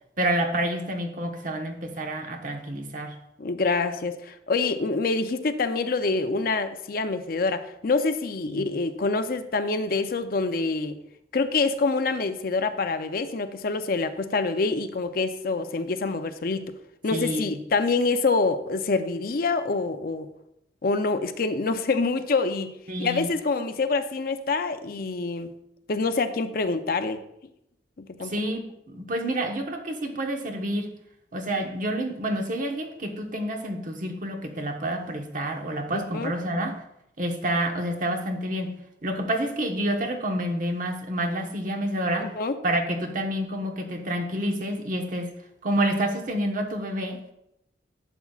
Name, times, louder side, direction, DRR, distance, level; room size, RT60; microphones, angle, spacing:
voice 1, 0.2-3.2 8.5-8.7 17.1-17.6 22.9-23.3 28.2-30.9 31.3-36.8 37.2-38.8 39.0-42.4 42.6-45.3 45.6-47.2, right 1 dB, 50° right, 3 dB, 1.2 m, -28 dB
voice 2, 3.4-11.0 11.3-16.7 17.0-20.3 20.8-22.7 23.0-25.5 25.9-27.2 28.0-28.3 35.9-36.3 42.2-42.5, left 3 dB, 55° left, 9 dB, 0.5 m, -26 dB
12.0 x 7.1 x 2.4 m, 0.81 s
head